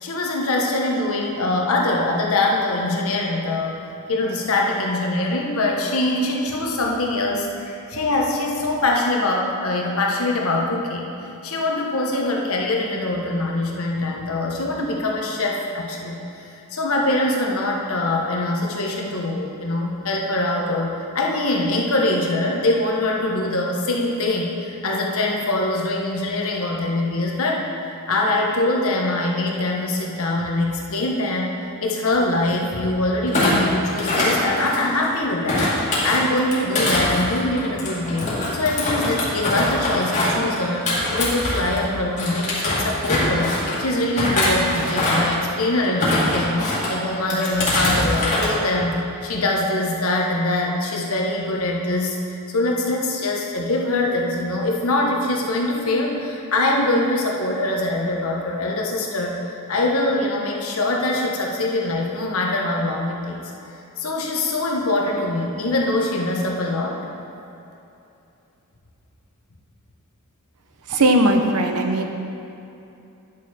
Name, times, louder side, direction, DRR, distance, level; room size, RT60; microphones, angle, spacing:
voice 1, 0.0-3.8 4.1-11.1 11.4-27.6 28.1-31.5 31.8-43.5 43.8-52.2 52.5-63.4 64.0-67.0, left 2 dB, 70° left, -1 dB, 1.2 m, -23 dB
Thump thud, 33.3-35.0 35.5-41.8 42.2-43.8 44.1-45.4 45.8-46.9 47.3-48.5 48.8-49.1, left 1 dB, 35° left, 2.2 m, -23 dB
voice 2, 70.9-72.1, right 1 dB, 85° right, 4 dB, 0.8 m, -18 dB
10.0 x 6.7 x 4.3 m, 2.8 s
head